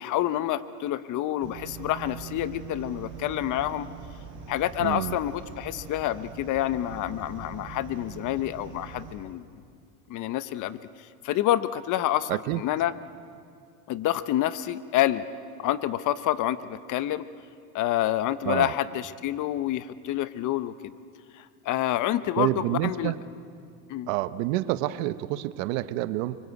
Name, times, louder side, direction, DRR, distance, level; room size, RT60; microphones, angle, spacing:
voice 1, 0.0-3.9 4.5-9.5 10.1-10.8 11.2-12.9 13.9-15.3 15.6-17.3 17.7-20.9 21.3-23.1 23.9-24.1, left 13 dB, 45° left, 14 dB, 1.0 m, -28 dB
sound 1, 1.4-9.2, right 6 dB, 25° right, 6.4 m, -42 dB
voice 2, 4.8-5.2 12.3-12.6 18.4-18.7 22.4-23.2 24.1-26.4, right 16 dB, 65° right, 14 dB, 1.1 m, -28 dB
28.0 x 25.0 x 8.3 m, 2.3 s
supercardioid pair, 125°, 43 cm